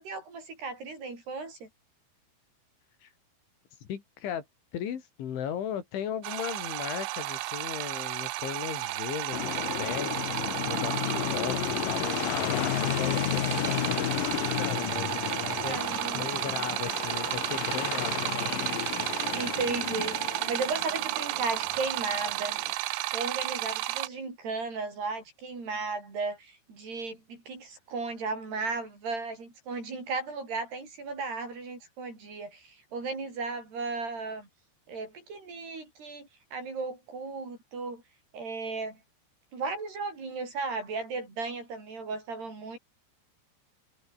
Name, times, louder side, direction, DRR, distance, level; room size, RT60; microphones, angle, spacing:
voice 1, 0.0-1.7 15.6-16.3 19.3-22.6 22.8-34.5 34.9-38.0 38.3-39.0 39.5-42.8, right 4 dB, 55° right, 10.0 m, -35 dB
voice 2, 3.8-4.5 4.7-15.8 16.1-18.6, left 9 dB, 75° left, 5.4 m, -37 dB
sound 1, 6.2-24.1, right 18 dB, 90° right, 3.6 m, -33 dB
sound 2, 9.3-22.7, left 14 dB, 90° left, 1.9 m, -33 dB
omnidirectional pair, 5.6 m